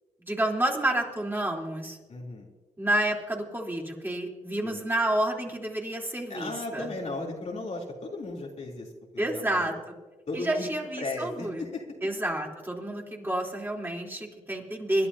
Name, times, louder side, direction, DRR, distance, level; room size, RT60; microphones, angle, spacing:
voice 1, 0.3-2.0 2.8-6.9 9.2-9.7 10.3-11.6 12.0-15.1, right 1 dB, 15° right, -1 dB, 3.7 m, -29 dB
voice 2, 2.1-2.5 4.6-4.8 6.3-9.7 10.3-10.7 11.0-12.1, left 2 dB, 55° left, -2 dB, 3.2 m, -36 dB
27.0 x 11.5 x 2.8 m, 1.2 s
supercardioid pair, 55°, 14 cm